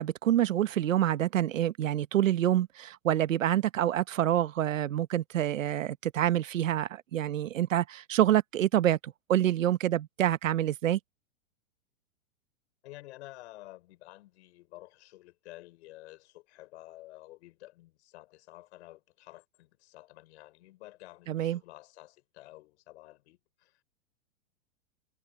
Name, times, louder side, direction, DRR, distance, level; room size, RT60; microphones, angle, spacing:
voice 1, 0.0-11.0 21.3-21.6, right 12 dB, 85° right, 1.2 m, -27 dB
voice 2, 12.8-23.8, left 17 dB, 60° left, 5.4 m, -51 dB
hypercardioid pair, 130°, 38 cm